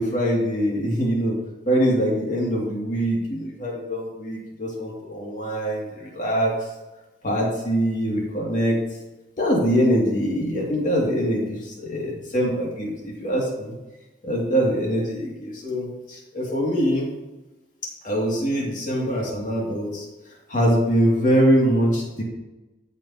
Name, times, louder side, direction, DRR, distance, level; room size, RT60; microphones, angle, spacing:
voice 1, 0.0-1.4 1.7-6.7 7.2-8.8 9.4-13.7 14.2-17.1 18.0-20.1 20.5-22.2, equal, 45° left, -3 dB, 2.6 m, -23 dB
14.5 x 5.5 x 2.9 m, 1.1 s
head